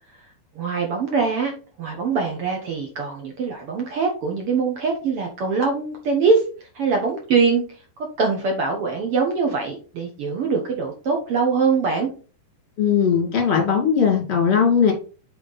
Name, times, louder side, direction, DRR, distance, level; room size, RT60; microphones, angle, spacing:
voice 1, 0.5-6.4 6.7-7.6 8.2-12.1, right 4 dB, 70° right, 1 dB, 1.3 m, -23 dB
voice 2, 12.8-14.9, left 7 dB, 25° left, 2 dB, 1.4 m, -18 dB
8.5 x 4.5 x 4.0 m, 0.37 s
omnidirectional pair, 4.3 m